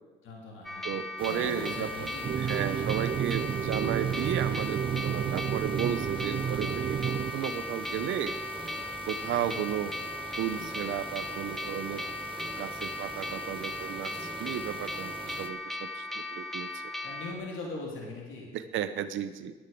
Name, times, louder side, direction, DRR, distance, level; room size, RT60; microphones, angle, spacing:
voice 1, 0.2-1.0 1.3-2.3 9.3-9.7 17.0-18.5, left 2 dB, 80° left, -1 dB, 3.0 m, -40 dB
sound 1, 0.6-17.3, left 2 dB, ahead, 1.1 m, -37 dB
voice 2, 0.8-2.1 2.4-8.4 9.1-9.9 10.4-12.0 12.6-16.9 18.5-19.5, right 10 dB, 80° right, 10 dB, 0.8 m, -34 dB
sound 2, 1.2-15.5, right 4 dB, 25° right, 1.2 m, -44 dB
sound 3, 2.2-7.3, right 9 dB, 45° right, 0.6 m, -31 dB
10.0 x 8.1 x 9.2 m, 1.3 s
cardioid pair, 90°, 20 cm